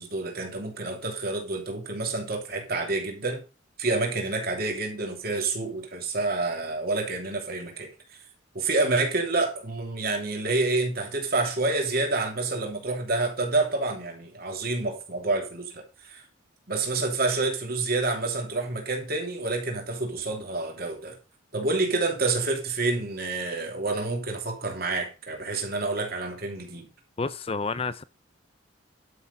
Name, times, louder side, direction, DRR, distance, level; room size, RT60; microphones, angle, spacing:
voice 1, 0.0-3.4 3.8-7.9 8.5-16.2 16.7-21.2 21.5-26.9, right 3 dB, 45° right, 2.9 m, -28 dB
voice 2, 27.2-28.0, left 4 dB, 30° left, 0.5 m, -30 dB
11.5 x 6.3 x 5.3 m
head